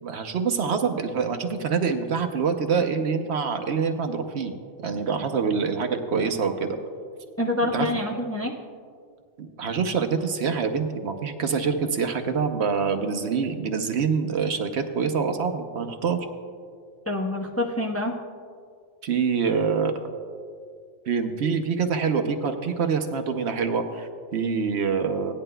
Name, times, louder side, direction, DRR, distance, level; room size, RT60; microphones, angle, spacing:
voice 1, 0.0-4.5 4.8-6.8 7.7-7.9 9.4-16.2 19.0-20.1 21.1-25.3, right 5 dB, 65° right, 6 dB, 1.0 m, -25 dB
voice 2, 7.4-8.6 17.1-18.1, left 1 dB, 15° left, -1 dB, 0.7 m, -26 dB
17.5 x 10.5 x 2.2 m, 2.2 s
omnidirectional pair, 1.2 m